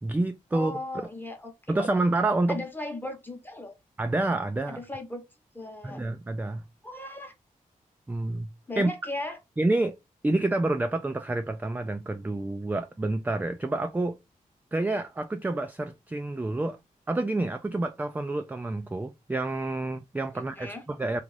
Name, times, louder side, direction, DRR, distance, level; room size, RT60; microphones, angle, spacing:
voice 1, 0.0-0.7 1.7-2.6 4.0-4.8 5.8-6.6 8.1-8.9 9.6-10.0 10.2-14.2 14.7-16.8 17.1-21.2, right 2 dB, 10° right, 0.3 m, -28 dB
voice 2, 0.5-1.5 2.5-3.7 4.8-5.2 5.5-6.0 6.8-7.3 8.7-9.4 20.3-20.8, left 2 dB, 15° left, 0.9 m, -37 dB
2.5 x 2.3 x 3.1 m
cardioid pair, 55°, 15 cm